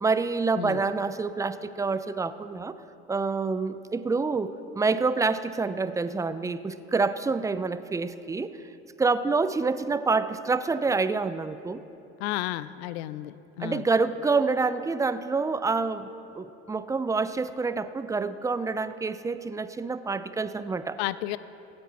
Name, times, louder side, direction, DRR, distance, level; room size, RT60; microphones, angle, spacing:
voice 1, 0.0-2.7 3.1-8.5 9.0-11.8 13.6-16.1 16.3-21.0, right 4 dB, 10° right, 13 dB, 0.5 m, -27 dB
voice 2, 12.2-13.8 21.0-21.4, left 16 dB, 70° left, 17 dB, 0.5 m, -32 dB
16.5 x 9.7 x 4.2 m, 2.9 s
hypercardioid pair, 65°, 33 cm